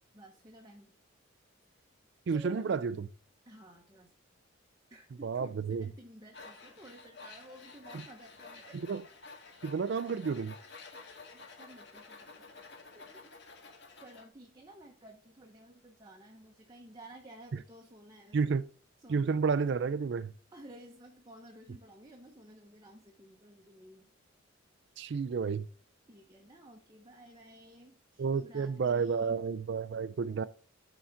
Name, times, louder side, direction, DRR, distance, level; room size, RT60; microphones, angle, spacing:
voice 1, 0.1-1.0 2.3-2.8 3.5-4.1 4.9-8.8 9.7-9.8 11.3-12.4 12.9-13.3 14.0-18.6 19.0-19.5 20.5-24.1 26.1-29.4, right 1 dB, 20° right, 0.8 m, -53 dB
voice 2, 2.3-3.1 5.2-5.9 7.9-8.0 8.7-9.0 9.6-10.5 18.3-18.6 19.1-20.3 25.0-25.7 28.2-30.4, right 5 dB, 55° right, 0.4 m, -31 dB
Tools, 6.3-14.3, left 4 dB, 55° left, 1.6 m, -51 dB
8.5 x 3.9 x 5.7 m
head